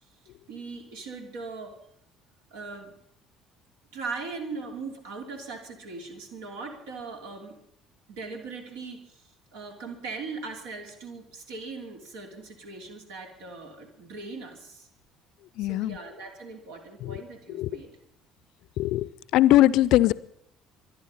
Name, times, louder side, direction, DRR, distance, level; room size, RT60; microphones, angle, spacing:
voice 1, 0.5-1.7 2.5-2.9 3.9-7.6 8.1-14.9 15.6-18.0, right 4 dB, 70° right, 3 dB, 3.1 m, -39 dB
voice 2, 15.6-16.0 17.0-17.1 17.6-17.7 18.8-20.1, left 15 dB, 60° left, 19 dB, 0.5 m, -21 dB
24.5 x 10.0 x 5.6 m, 0.71 s
figure-of-eight pair, 55°, 0 cm